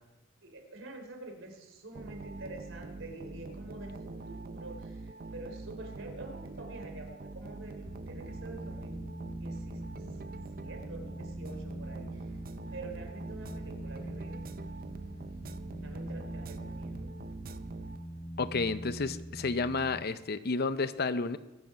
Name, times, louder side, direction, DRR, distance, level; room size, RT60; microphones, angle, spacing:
voice 1, 0.4-9.1 9.4-9.8 10.6-12.2 12.7-14.4 15.8-17.2, right 2 dB, 75° right, 4 dB, 3.3 m, -47 dB
sound 1, 1.9-18.4, right 3 dB, 45° right, 0.6 m, -44 dB
sound 2, 7.8-20.0, right 1 dB, 5° left, 0.8 m, -43 dB
voice 2, 18.4-21.4, left 4 dB, 55° left, 13 dB, 0.7 m, -31 dB
21.5 x 7.9 x 5.9 m, 1.1 s
head